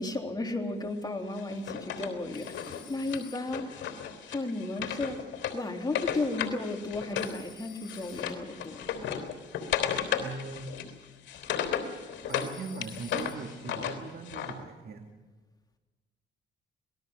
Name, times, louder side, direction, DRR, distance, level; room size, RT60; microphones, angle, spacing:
voice 1, 0.0-3.8 4.3-5.2 5.5-8.9, left 2 dB, 20° left, 2 dB, 3.4 m, -34 dB
Wood, 1.3-7.4 7.6-12.5 12.8-14.5, left 8 dB, 70° left, 3.4 m, -35 dB
Telephone, 2.3-3.8 7.2-8.6 12.3-13.7, left 10 dB, 50° left, 5.0 m, -52 dB
voice 2, 10.1-10.8 12.3-15.1, right 4 dB, 50° right, 4 dB, 2.2 m, -40 dB
26.5 x 19.5 x 6.5 m, 1.3 s
cardioid pair, 90°, 20 cm